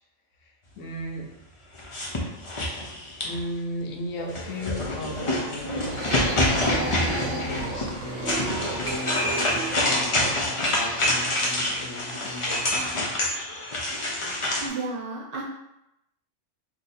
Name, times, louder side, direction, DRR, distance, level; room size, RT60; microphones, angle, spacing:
voice 1, 0.4-1.3 3.2-5.9 6.3-13.1, left 1 dB, 80° left, 1 dB, 1.0 m, -36 dB
sound 1, 1.8-3.5 4.3-14.7, left 1 dB, 35° left, 0.5 m, -27 dB
sound 2, 4.1-10.3, right 3 dB, 25° right, 0.5 m, -42 dB
sound 3, 5.7-10.5, right 3 dB, 80° right, 1.0 m, -34 dB
voice 2, 14.6-15.4, right 3 dB, 50° right, -4 dB, 0.9 m, -32 dB
2.7 x 2.7 x 4.0 m, 0.86 s
omnidirectional pair, 1.3 m